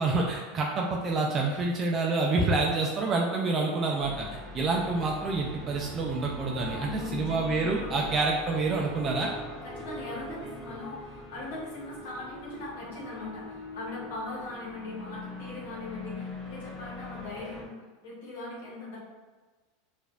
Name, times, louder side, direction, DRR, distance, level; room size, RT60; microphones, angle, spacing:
voice 1, 0.0-9.3, right 3 dB, 30° right, -1 dB, 0.4 m, -28 dB
sound 1, 4.0-17.6, left 1 dB, 5° left, 1.0 m, -42 dB
voice 2, 6.7-8.1 9.6-19.0, left 2 dB, 75° left, -5 dB, 1.1 m, -40 dB
4.6 x 2.5 x 2.4 m, 1.3 s
supercardioid pair, 115°, 0 cm